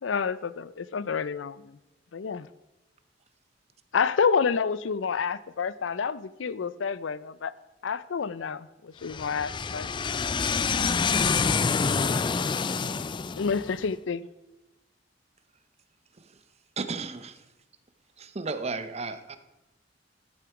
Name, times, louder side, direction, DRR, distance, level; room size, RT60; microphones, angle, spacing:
voice 1, 0.0-1.8 2.1-2.5 3.9-7.5 7.8-9.9 13.4-14.3, left 6 dB, 85° left, 0.5 m, -29 dB
voice 2, 9.1-13.4, left 5 dB, 25° left, 0.4 m, -26 dB
voice 3, 16.8-17.4 18.2-19.4, right 4 dB, 35° right, 0.8 m, -34 dB
13.5 x 7.7 x 4.9 m
head